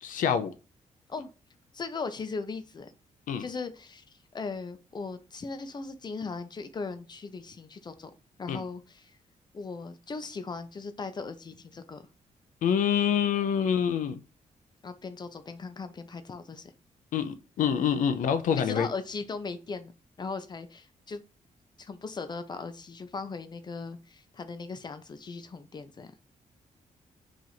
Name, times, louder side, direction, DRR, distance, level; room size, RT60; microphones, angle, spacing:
voice 1, 0.0-0.5 3.3-3.5 8.5-8.6 12.6-14.2 17.1-18.9, left 8 dB, 80° left, 0.5 m, -26 dB
voice 2, 1.7-2.9 3.4-8.1 8.4-9.1 9.5-12.0 13.7-13.8 14.8-16.6 18.6-19.9 20.2-21.2 21.8-26.1, left 4 dB, 35° left, 0.5 m, -38 dB
2.9 x 2.5 x 4.0 m
cardioid pair, 115°, 13 cm